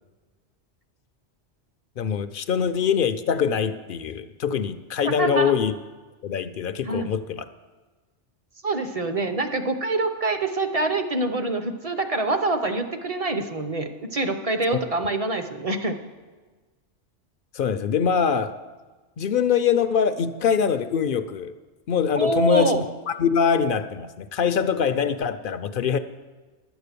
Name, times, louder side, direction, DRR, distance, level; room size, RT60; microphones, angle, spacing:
voice 1, 2.0-5.7 6.2-7.4 17.5-18.5 19.2-21.5 21.9-26.0, left 7 dB, 60° left, 11 dB, 0.6 m, -23 dB
voice 2, 5.0-5.5 6.8-7.1 8.6-16.0 22.1-22.8, right 2 dB, 35° right, 7 dB, 0.7 m, -25 dB
11.5 x 8.1 x 6.8 m, 1.3 s
omnidirectional pair, 1.2 m